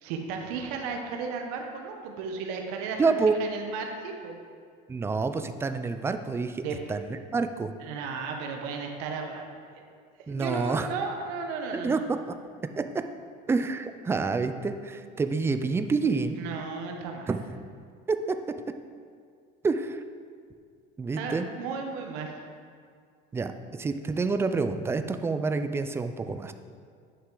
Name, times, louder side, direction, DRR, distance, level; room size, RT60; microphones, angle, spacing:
voice 1, 0.0-4.4 6.6-6.8 7.8-9.5 10.3-12.0 16.3-17.4 21.1-22.4, right 5 dB, 85° right, 3 dB, 1.0 m, -34 dB
voice 2, 3.0-3.4 4.9-6.6 6.9-7.7 10.3-10.9 11.7-12.3 12.8-12.9 13.5-16.4 17.3-17.4 18.1-18.4 19.6-20.0 21.0-21.5 23.3-26.5, right 4 dB, 10° right, 9 dB, 0.3 m, -28 dB
9.6 x 5.7 x 3.8 m, 2.1 s
cardioid pair, 135°, 20 cm